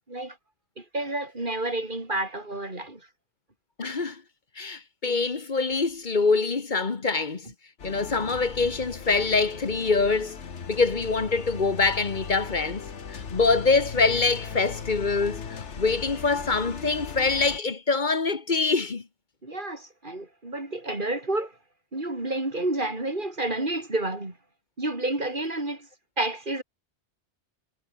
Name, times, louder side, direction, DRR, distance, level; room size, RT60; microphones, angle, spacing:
voice 1, 0.8-3.1 7.4-7.5 19.4-21.6 21.9-24.4 24.8-25.9 26.2-26.6, right 2 dB, 45° right, 4.5 m, -30 dB
voice 2, 3.8-4.2 4.6-7.5 7.8-10.4 10.7-12.8 13.1-19.0, left 4 dB, 45° left, 1.6 m, -24 dB
sound 1, 7.8-17.6, left 6 dB, 80° left, 1.7 m, -38 dB
omnidirectional pair, 1.2 m